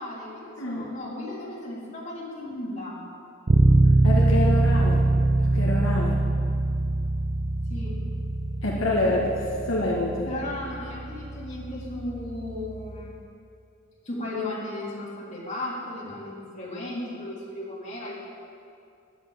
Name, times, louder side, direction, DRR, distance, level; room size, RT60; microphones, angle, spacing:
voice 1, 0.0-3.0 7.7-8.0 10.3-13.2 14.0-18.1, left 1 dB, 35° left, -6 dB, 3.4 m, -35 dB
Bass guitar, 3.5-13.2, right 2 dB, 40° right, 0.5 m, -24 dB
voice 2, 4.0-5.1 5.4-6.2 8.6-10.3, left 1 dB, 75° left, -4 dB, 1.7 m, -27 dB
11.0 x 8.0 x 8.9 m, 2.5 s
head